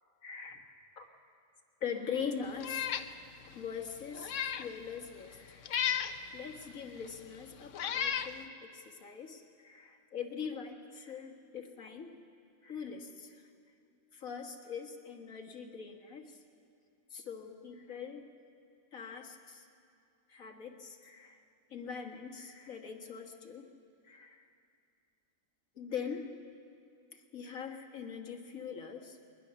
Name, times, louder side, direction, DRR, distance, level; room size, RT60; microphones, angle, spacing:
voice 1, 0.2-0.6 1.0-1.1 1.8-3.0 3.5-5.7 6.3-12.1 12.6-13.5 14.1-16.4 17.1-18.3 18.9-19.7 20.3-21.4 21.7-23.7 24.0-24.5 25.8-26.3 27.1-29.2, left 6 dB, 90° left, 3 dB, 2.0 m, -42 dB
Meow, 2.6-3.1 3.5-3.6 4.1-4.7 5.7-6.2 7.0-7.1 7.7-8.3, left 8 dB, 70° left, 1.1 m, -33 dB
22.0 x 20.5 x 7.0 m, 2.4 s
omnidirectional pair, 1.4 m